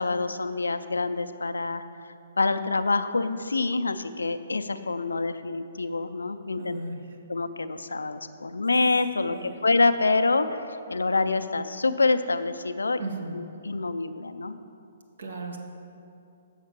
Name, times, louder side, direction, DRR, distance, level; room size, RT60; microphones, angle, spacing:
voice 1, 0.0-1.8 2.4-6.8 7.3-13.0 13.3-14.6, left 3 dB, 90° left, 9 dB, 0.4 m, -26 dB
voice 2, 6.6-7.0 9.3-9.5 13.0-13.4 15.2-15.6, right 2 dB, 70° right, 3 dB, 1.1 m, -35 dB
7.3 x 5.7 x 6.0 m, 2.6 s
hypercardioid pair, 130°, 0 cm